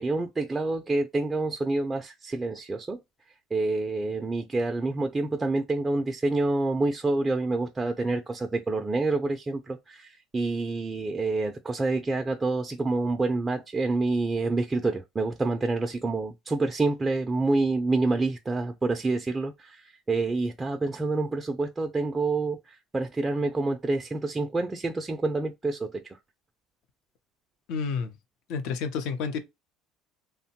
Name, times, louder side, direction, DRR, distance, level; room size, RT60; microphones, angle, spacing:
voice 1, 0.0-3.0 3.5-26.2, right 3 dB, 20° right, 0.4 m, -27 dB
voice 2, 27.7-28.1 28.5-29.4, left 5 dB, 75° left, 0.6 m, -30 dB
2.9 x 2.1 x 2.7 m
supercardioid pair, 110°, 0 cm